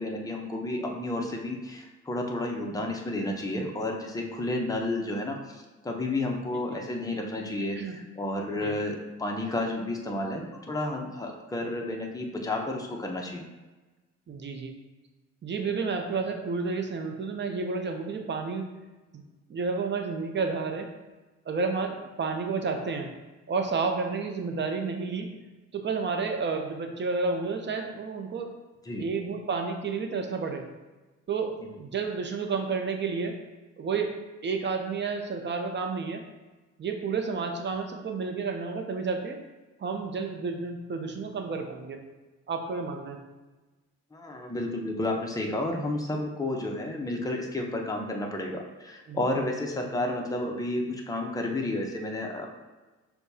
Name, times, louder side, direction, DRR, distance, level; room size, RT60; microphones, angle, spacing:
voice 1, 0.0-13.4 28.8-29.1 44.1-52.5, left 1 dB, 10° left, 0 dB, 0.7 m, -31 dB
voice 2, 6.5-6.8 7.8-8.0 8.6-8.9 14.3-14.7 15.4-18.7 19.5-20.9 21.5-23.1 23.5-25.3 25.7-28.5 29.0-30.6 31.3-31.5 31.8-33.4 33.8-34.1 34.4-36.2 36.8-39.4 39.8-42.0 42.5-43.2 49.1-49.2, right 4 dB, 40° right, 3 dB, 0.6 m, -31 dB
6.4 x 2.3 x 2.7 m, 1.2 s
cardioid pair, 90°, 30 cm